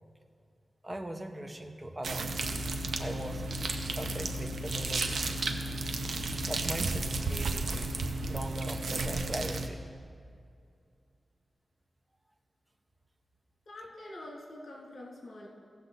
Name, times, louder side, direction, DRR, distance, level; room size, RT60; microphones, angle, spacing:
voice 1, 0.8-2.4 3.0-3.5 4.0-5.4 6.4-8.0 8.2-9.8, right 1 dB, 15° right, 5 dB, 0.8 m, -40 dB
sound 1, 2.0-9.7, right 2 dB, 80° right, 0.7 m, -33 dB
voice 2, 13.7-15.5, left 1 dB, 60° left, -3 dB, 2.5 m, -45 dB
16.0 x 6.9 x 4.0 m, 2.3 s
wide cardioid pair, 120°, 0 cm